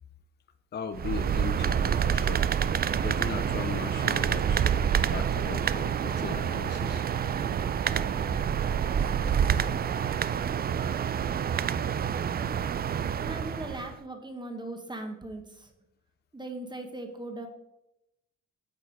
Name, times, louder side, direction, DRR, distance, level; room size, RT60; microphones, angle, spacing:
voice 1, 0.7-2.5 3.0-4.7 5.1-7.0, left 6 dB, 35° left, 9 dB, 0.5 m, -38 dB
sound 1, 1.0-13.9, right 8 dB, 30° right, 0.4 m, -27 dB
sound 2, 4.0-12.8, right 10 dB, 75° right, 0.6 m, -44 dB
voice 2, 13.1-15.7 16.3-17.5, right 2 dB, 15° right, 5 dB, 1.3 m, -39 dB
8.7 x 4.6 x 4.7 m, 0.87 s
cardioid pair, 90°, 30 cm